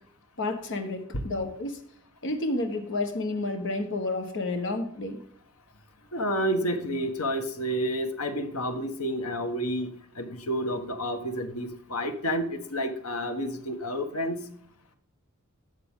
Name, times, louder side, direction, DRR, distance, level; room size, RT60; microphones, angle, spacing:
voice 1, 0.4-1.8 2.2-5.2, left 2 dB, 60° left, 5 dB, 1.3 m, -30 dB
voice 2, 6.1-9.9 10.1-14.5, equal, 85° left, 6 dB, 1.4 m, -30 dB
12.0 x 7.7 x 3.7 m, 0.66 s
head